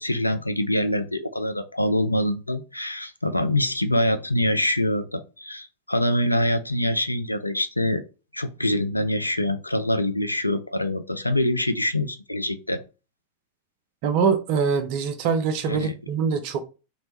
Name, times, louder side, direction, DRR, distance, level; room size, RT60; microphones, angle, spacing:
voice 1, 0.0-8.0 8.3-12.8 15.7-15.9, left 1 dB, 85° left, 0.3 m, -25 dB
voice 2, 14.0-16.6, right 6 dB, 45° right, 0.5 m, -23 dB
3.0 x 2.1 x 2.7 m
figure-of-eight pair, 90°, 0 cm